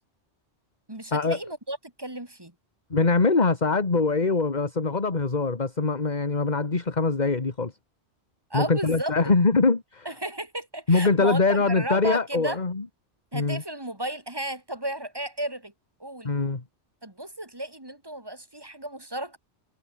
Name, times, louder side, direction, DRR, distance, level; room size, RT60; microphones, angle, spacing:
voice 1, 0.9-2.5 8.5-9.1 10.0-12.6 13.3-15.7 16.0-16.3 17.0-19.4, right 1 dB, 20° right, 2.5 m, -33 dB
voice 2, 2.9-7.7 8.5-10.1 10.9-12.8 13.3-13.6 16.2-16.6, left 3 dB, 35° left, 2.0 m, -23 dB
omnidirectional pair, 1.2 m